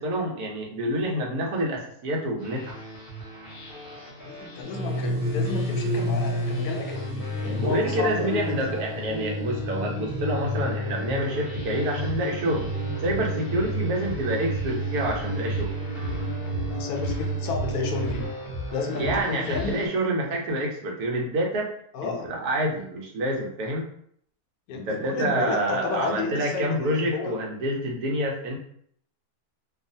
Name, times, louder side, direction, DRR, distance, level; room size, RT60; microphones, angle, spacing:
voice 1, 0.0-2.8 7.6-12.7 13.0-15.7 19.0-21.7 22.0-23.9 24.9-28.6, right 1 dB, 80° right, -1 dB, 1.2 m, -27 dB
sound 1, 2.4-19.9, equal, 45° left, 0.8 m, -38 dB
voice 2, 4.2-8.6 16.7-18.3 18.7-19.9 21.9-22.3 24.7-27.3, left 5 dB, 75° left, 2 dB, 1.0 m, -32 dB
sound 2, 4.6-18.2, equal, 40° right, 1.1 m, -30 dB
2.7 x 2.3 x 2.6 m, 0.66 s
omnidirectional pair, 1.6 m